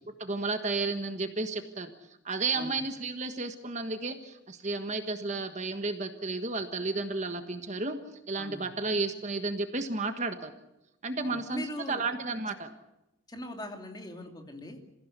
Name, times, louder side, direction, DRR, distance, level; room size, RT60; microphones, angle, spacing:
voice 1, 0.2-1.9 2.2-8.0 8.3-10.5 11.0-12.7, right 3 dB, 35° right, 7 dB, 1.4 m, -32 dB
voice 2, 8.4-8.7 11.2-12.0 13.3-14.8, left 1 dB, 20° left, 3 dB, 2.8 m, -41 dB
27.0 x 16.0 x 8.3 m, 0.93 s
head